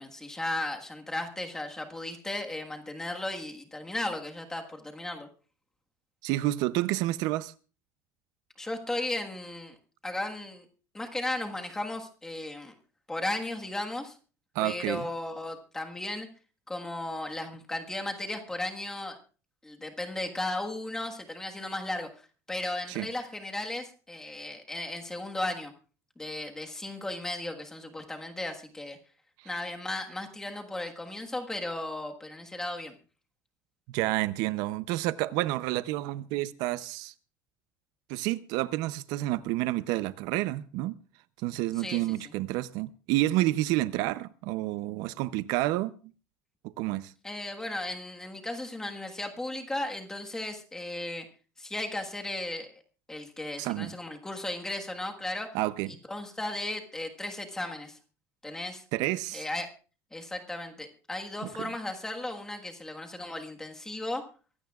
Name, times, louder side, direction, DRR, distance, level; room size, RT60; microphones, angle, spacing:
voice 1, 0.0-5.3 8.6-9.7 10.0-10.6 10.9-12.7 13.1-14.2 14.6-16.3 16.7-19.2 19.6-22.1 22.5-25.7 26.2-29.0 29.4-33.0 41.8-42.0 47.2-51.3 51.6-52.8 53.1-55.5 55.9-58.0 58.4-58.8 59.3-59.7 60.1-64.2, left 2 dB, 10° left, 1.5 m, -35 dB
voice 2, 6.2-7.5 14.5-15.0 22.9-23.1 33.9-37.1 38.1-41.0 41.4-45.9 46.8-47.1 53.6-53.9 55.5-55.9 58.9-59.4 61.6-61.7, right 17 dB, 70° right, 0.6 m, -29 dB
23.5 x 16.0 x 2.4 m
cardioid pair, 175°, 7 cm